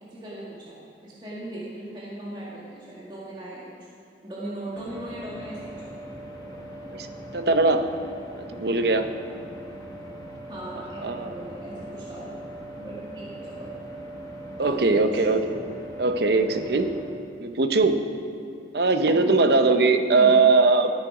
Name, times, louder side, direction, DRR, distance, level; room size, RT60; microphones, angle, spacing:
voice 1, 0.0-3.6 4.2-5.9 10.5-12.3 12.8-13.7 14.6-15.2 19.1-19.4 20.1-20.4, right 1 dB, 25° right, -7 dB, 2.0 m, -38 dB
sound 1, 4.7-17.1, right 1 dB, 20° left, 1.2 m, -40 dB
voice 2, 7.3-7.9 8.3-9.1 11.0-11.3 14.6-15.5 16.0-16.9 17.4-18.1 18.7-20.9, right 3 dB, 65° right, 7 dB, 0.8 m, -20 dB
13.0 x 10.0 x 4.9 m, 2.5 s
head